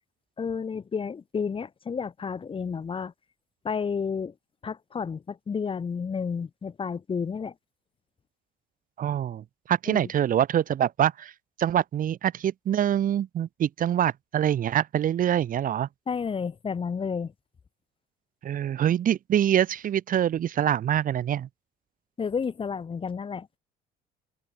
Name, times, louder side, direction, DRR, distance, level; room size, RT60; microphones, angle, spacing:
voice 1, 0.4-3.1 3.6-4.3 4.6-7.5 9.9-10.1 16.1-17.3 22.2-23.5, left 6 dB, 30° left, 2.1 m, -31 dB
voice 2, 9.0-11.3 11.6-15.9 18.4-21.5, right 10 dB, 55° right, 2.7 m, -25 dB
cardioid pair, 110°, 17 cm